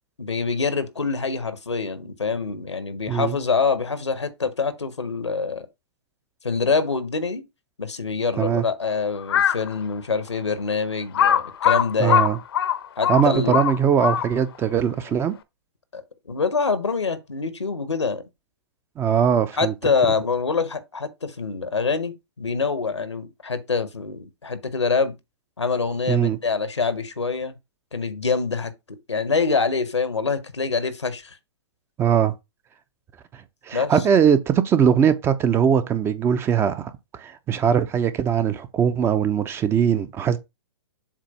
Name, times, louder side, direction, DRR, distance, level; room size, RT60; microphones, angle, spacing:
voice 1, 0.2-5.7 6.4-7.4 7.8-12.2 13.0-13.6 15.9-18.2 19.6-25.1 25.6-27.6 27.9-31.4 33.7-33.9, left 4 dB, 90° left, 1.2 m, -25 dB
Crow, 9.2-9.7 10.3-10.4 11.1-14.6, left 9 dB, 60° left, 0.8 m, -21 dB
voice 2, 12.0-12.4 13.1-15.3 19.0-19.7 26.1-26.4 32.0-32.3 33.7-36.9 37.2-40.4, right 8 dB, 15° right, 0.6 m, -20 dB
7.4 x 2.6 x 5.3 m
figure-of-eight pair, 120°, 14 cm